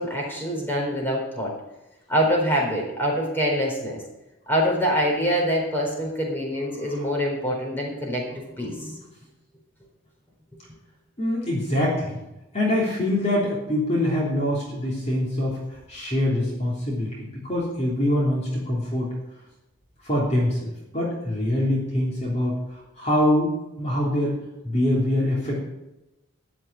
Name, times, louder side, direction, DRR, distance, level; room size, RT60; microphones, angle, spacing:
voice 1, 0.0-1.5 2.1-4.0 4.5-9.0, equal, 10° left, -2 dB, 4.0 m, -25 dB
voice 2, 11.2-12.2 12.5-15.6 15.9-19.1 20.0-22.6 23.0-23.5 23.8-24.4 24.6-25.5, left 1 dB, 30° left, -5 dB, 3.3 m, -24 dB
14.0 x 6.0 x 9.5 m, 0.96 s
head